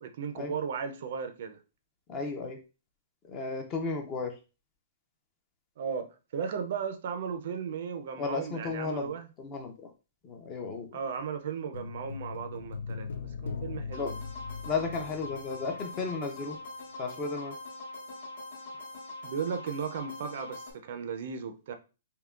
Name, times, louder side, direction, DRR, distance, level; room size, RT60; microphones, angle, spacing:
voice 1, 0.0-1.6 5.8-9.3 10.9-13.1 13.4-14.2 19.2-21.7, right 6 dB, 50° right, 0.4 m, -36 dB
voice 2, 2.1-2.6 3.3-4.3 8.2-9.1 9.4-9.7 10.2-10.9 13.9-14.1 14.6-16.6 17.0-17.5, left 4 dB, 20° left, 0.5 m, -34 dB
sound 1, 11.7-16.2 16.4-16.6, left 5 dB, 75° left, 0.4 m, -40 dB
sound 2, 13.9-20.7, left 2 dB, 55° left, 1.0 m, -43 dB
3.6 x 2.8 x 2.3 m
hypercardioid pair, 170°, 0 cm